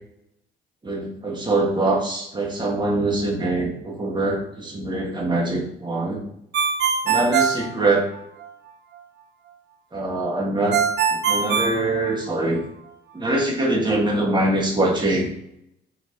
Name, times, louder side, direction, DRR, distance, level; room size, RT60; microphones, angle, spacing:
voice 1, 0.8-6.2 7.0-8.1 9.9-10.8 11.1-12.6 13.1-15.3, right 2 dB, 20° right, -2 dB, 1.9 m, -23 dB
Ringtone, 6.5-8.5 10.7-12.6, right 6 dB, 65° right, 0.8 m, -22 dB
6.9 x 4.2 x 4.0 m, 0.76 s
cardioid pair, 90°, 20 cm